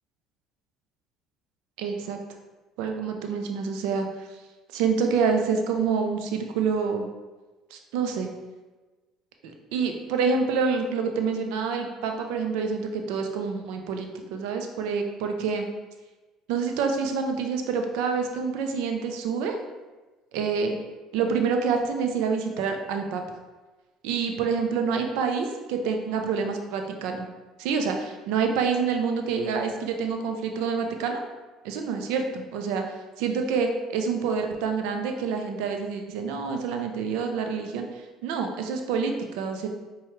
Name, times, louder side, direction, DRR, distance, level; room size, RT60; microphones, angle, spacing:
voice 1, 1.8-2.2 2.8-4.3 4.7-7.1 7.7-8.3 9.7-15.7 16.5-19.6 20.3-20.7 21.1-23.2 24.0-27.3 27.6-31.2 31.6-32.8 33.2-39.7, right 5 dB, 75° right, 4 dB, 0.5 m, -27 dB
4.6 x 2.3 x 3.1 m, 1.2 s
supercardioid pair, 80°, 0 cm